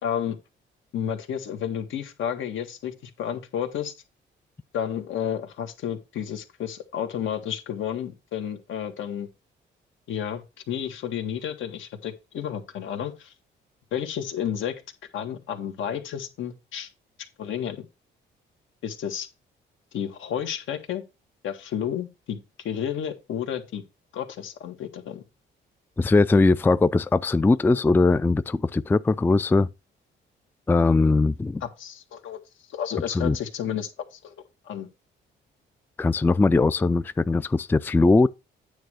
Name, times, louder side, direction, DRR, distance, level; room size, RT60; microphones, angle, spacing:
voice 1, 0.0-0.4 0.9-3.9 4.7-9.3 10.1-13.3 13.9-14.8 15.1-16.9 17.4-17.9 18.8-19.3 19.9-21.0 21.4-23.8 24.1-25.2 31.6-32.4 32.7-34.3 34.6-34.9, left 9 dB, 75° left, 1.7 m, -31 dB
voice 2, 26.0-29.7 30.7-31.6 33.1-33.4 36.0-38.3, left 3 dB, 10° left, 0.3 m, -20 dB
9.3 x 3.3 x 6.3 m
cardioid pair, 90°, 20 cm